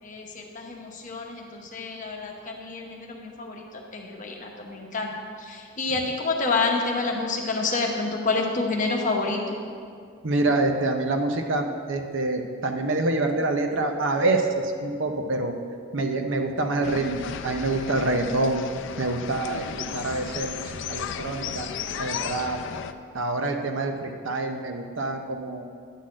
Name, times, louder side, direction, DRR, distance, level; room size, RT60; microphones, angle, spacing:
voice 1, 0.0-3.6 3.9-9.6, left 3 dB, 40° left, 1 dB, 1.0 m, -28 dB
voice 2, 10.2-15.5 15.9-18.6 19.0-19.7 19.9-20.6 20.9-21.7 22.0-22.6 23.1-25.7, right 2 dB, 65° right, 4 dB, 0.7 m, -26 dB
sound 1, 16.8-22.9, left 7 dB, 60° left, 0.4 m, -34 dB
10.0 x 4.1 x 7.5 m, 2.2 s
head